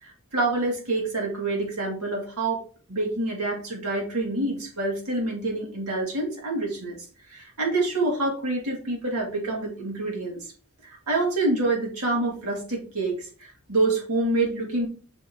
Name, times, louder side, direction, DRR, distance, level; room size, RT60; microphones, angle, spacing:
voice 1, 0.0-2.6 2.9-7.0 7.3-10.4 10.8-14.9, right 2 dB, 80° right, -1 dB, 2.6 m, -27 dB
6.2 x 3.9 x 4.6 m, 0.40 s
head